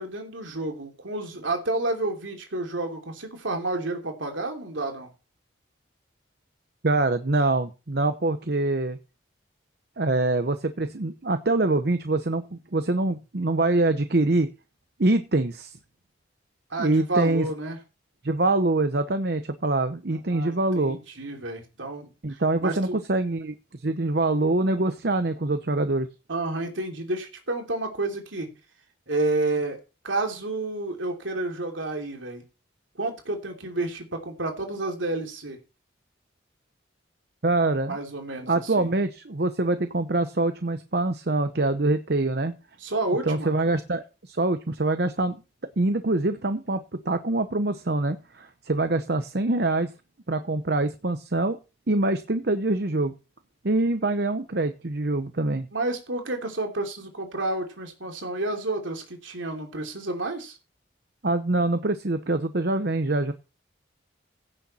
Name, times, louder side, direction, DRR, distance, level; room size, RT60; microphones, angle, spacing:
voice 1, 0.0-5.1 16.7-17.8 20.1-23.0 26.3-28.5 29.1-29.8 30.0-32.4 33.0-35.6 37.9-38.9 42.8-43.5 55.7-60.6, right 2 dB, 80° right, 3 dB, 3.0 m, -30 dB
voice 2, 6.8-9.0 10.0-14.5 15.0-15.8 16.8-17.5 18.2-21.0 22.2-26.1 37.4-38.0 38.5-42.5 43.3-45.4 45.8-49.9 50.3-51.6 51.9-53.1 53.6-55.7 61.2-63.3, right 2 dB, 55° right, 9 dB, 0.9 m, -24 dB
16.0 x 6.6 x 4.3 m, 0.31 s
head